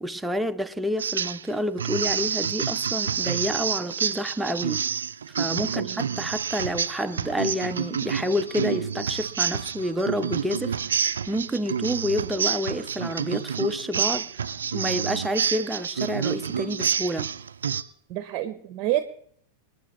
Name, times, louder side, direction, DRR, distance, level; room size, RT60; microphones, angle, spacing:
voice 1, 0.0-4.8 5.4-14.3 14.7-17.3, equal, 5° right, 0.7 m, -29 dB
sound 1, 1.0-1.5 1.8-17.8, right 7 dB, 70° right, 0.5 m, -28 dB
voice 2, 5.6-6.3 18.1-19.0, right 14 dB, 40° right, 0.9 m, -29 dB
sound 2, 6.4-6.5 6.7-7.9 8.2-8.8 9.2-11.3 11.7-11.8 12.2-12.6 13.1-13.4 14.1-14.6 14.8-14.9 15.2-15.3 15.6-15.8 16.5-16.7 17.2-17.3 17.7-17.8, right 2 dB, 85° left, 5.3 m, -47 dB
27.0 x 9.4 x 3.1 m
figure-of-eight pair, 90°, 0 cm